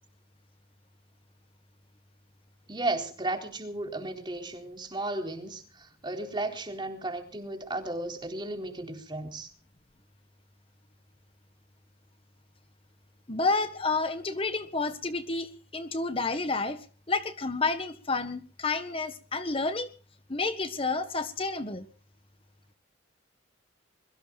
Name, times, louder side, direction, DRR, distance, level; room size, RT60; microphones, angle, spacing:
voice 1, 2.7-9.5, right 2 dB, 25° right, 3.9 m, -34 dB
voice 2, 13.3-16.8 17.1-19.9 20.3-21.8, left 3 dB, 30° left, 1.5 m, -30 dB
25.5 x 22.5 x 2.5 m
head